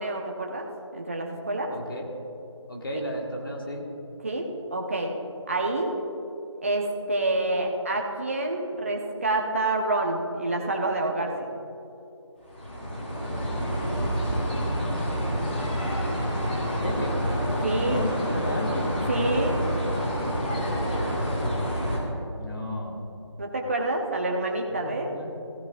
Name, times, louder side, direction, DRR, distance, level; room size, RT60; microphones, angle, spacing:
voice 1, 0.0-1.7 4.2-5.1 5.5-6.0 6.6-11.5 17.6-18.0 19.1-19.6 23.4-25.2, right 2 dB, 25° right, 1 dB, 0.9 m, -27 dB
voice 2, 1.7-2.1 2.7-3.9 16.5-17.3 17.7-19.0 22.4-23.0 24.7-25.3, left 1 dB, 45° left, 0 dB, 1.8 m, -33 dB
sound 1, 12.4-22.0, equal, 20° left, 1.8 m, -28 dB
16.0 x 14.0 x 2.5 m, 2.8 s
figure-of-eight pair, 165°, 16 cm